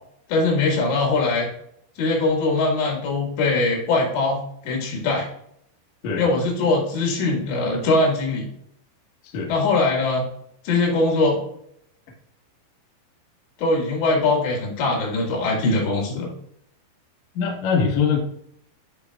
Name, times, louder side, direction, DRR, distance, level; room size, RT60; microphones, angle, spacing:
voice 1, 0.3-1.5 2.0-5.3 6.2-8.5 9.5-10.3 10.6-11.4 13.6-16.3, left 3 dB, 80° left, -1 dB, 4.1 m, -21 dB
voice 2, 17.3-18.2, left 6 dB, 65° left, -1 dB, 1.8 m, -22 dB
10.5 x 4.7 x 2.3 m, 0.70 s
omnidirectional pair, 5.1 m